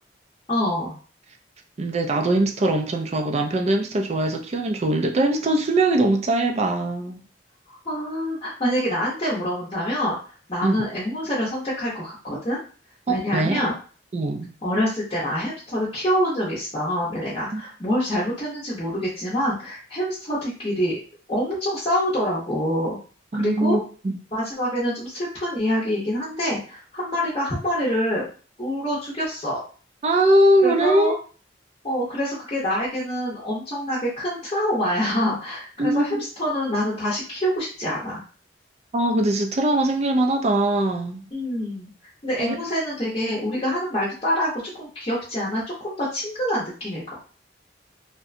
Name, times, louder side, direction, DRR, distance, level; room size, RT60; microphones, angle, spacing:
voice 1, 0.5-0.9 7.7-10.2 10.5-12.6 13.1-13.7 14.6-21.0 21.3-23.0 23.3-23.8 24.3-28.2 28.6-29.6 30.6-31.1 31.8-38.2 41.3-41.9 42.2-47.2, equal, 30° left, 0.7 m, -26 dB
voice 2, 1.8-7.2 10.6-10.8 13.1-13.6 14.1-14.5 17.5-17.6 23.3-23.8 24.0-24.2 30.0-31.2 35.8-36.1 38.9-41.2 42.4-42.5, right 1 dB, 35° right, 0.4 m, -21 dB
2.7 x 2.1 x 2.5 m
head